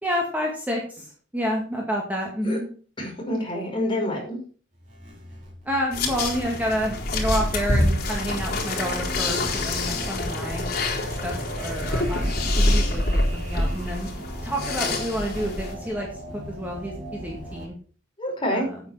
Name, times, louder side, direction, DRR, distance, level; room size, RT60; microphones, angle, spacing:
voice 1, 0.0-2.6 5.6-10.7 11.0-13.0 13.3-14.1 14.4-16.1 16.3-17.7 18.5-18.8, equal, 10° right, -1 dB, 2.1 m, -29 dB
voice 2, 3.0-4.4 18.2-18.7, left 1 dB, 25° left, -1 dB, 5.4 m, -27 dB
sound 1, 4.7-17.7, right 1 dB, 40° right, 5.5 m, -39 dB
sound 2, 5.9-15.7, left 1 dB, 55° left, 4.2 m, -26 dB
9.4 x 8.9 x 5.7 m, 0.40 s
head